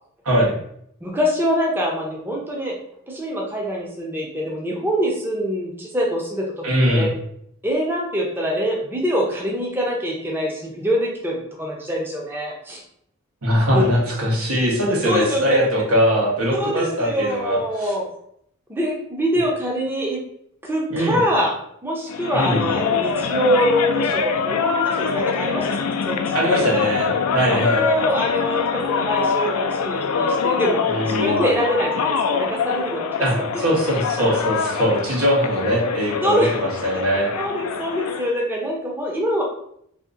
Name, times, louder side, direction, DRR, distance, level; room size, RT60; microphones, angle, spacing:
voice 1, 0.2-0.6 6.6-7.1 13.4-17.9 20.9-21.2 22.3-22.6 26.3-27.8 30.9-31.4 33.2-37.3, equal, 90° right, -3 dB, 1.2 m, -21 dB
voice 2, 1.0-2.7 3.1-7.1 7.6-12.8 13.7-13.9 15.0-15.6 16.5-18.1 18.7-20.2 20.6-21.5 21.8-26.6 27.5-33.4 34.2-34.4 36.2-36.7 37.3-39.4, equal, 10° right, -2 dB, 0.5 m, -24 dB
sound 1, 22.1-38.3, left 5 dB, 85° left, 0.4 m, -24 dB
2.8 x 2.5 x 3.6 m, 0.70 s
head